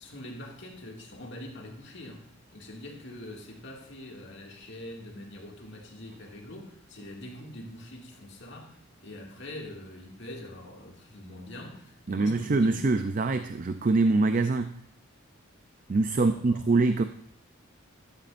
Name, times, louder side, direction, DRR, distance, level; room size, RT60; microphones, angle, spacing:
voice 1, 0.0-13.0 16.1-16.6, left 1 dB, 60° left, 0 dB, 2.2 m, -44 dB
voice 2, 12.1-14.8 15.9-17.0, right 3 dB, 40° right, 9 dB, 0.4 m, -24 dB
14.0 x 12.0 x 2.6 m, 0.67 s
head